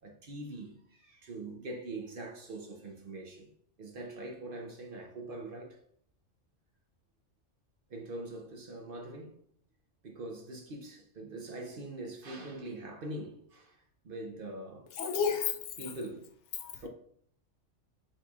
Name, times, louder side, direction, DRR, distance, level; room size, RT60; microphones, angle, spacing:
voice 1, 0.0-3.5 3.8-5.8 7.9-9.4 10.0-13.8 14.0-14.9 15.8-16.3 16.7-16.9, right 2 dB, 50° right, 0.8 m, -43 dB
voice 2, 15.0-15.5 16.6-16.9, left 6 dB, 75° left, 0.9 m, -31 dB
6.0 x 3.1 x 2.3 m
omnidirectional pair, 1.3 m